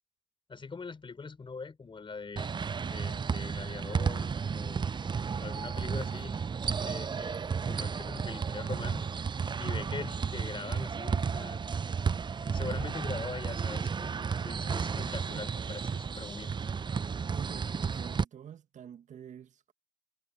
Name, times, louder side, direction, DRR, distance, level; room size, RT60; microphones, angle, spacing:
voice 1, 0.5-2.5 2.9-4.8 5.4-6.4 6.8-7.4 7.7-9.1 9.6-11.6 12.4-16.5, left 4 dB, 35° left, 4.3 m, -42 dB
sound 1, 2.4-18.2, right 6 dB, 30° right, 0.7 m, -33 dB
voice 2, 5.8-6.2 15.3-15.5 17.3-19.7, right 9 dB, 50° right, 1.6 m, -47 dB
hypercardioid pair, 45°, 16 cm